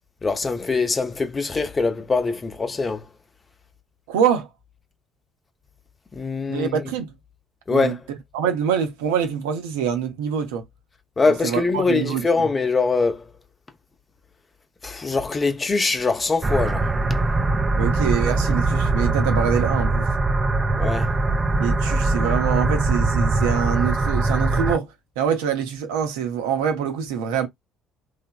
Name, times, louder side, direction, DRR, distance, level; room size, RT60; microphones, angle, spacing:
voice 1, 0.2-3.0 6.1-6.7 7.7-8.0 11.2-13.2 14.8-16.9 20.8-21.1, left 4 dB, 25° left, 0.7 m, -23 dB
voice 2, 4.1-4.5 6.5-7.1 7.7-10.6 11.3-12.5 17.8-20.0 21.6-24.9 25.2-27.5, right 8 dB, 70° right, 0.5 m, -25 dB
sound 1, 16.4-24.8, right 2 dB, 25° right, 0.3 m, -21 dB
3.2 x 2.1 x 2.3 m
figure-of-eight pair, 50°, 0 cm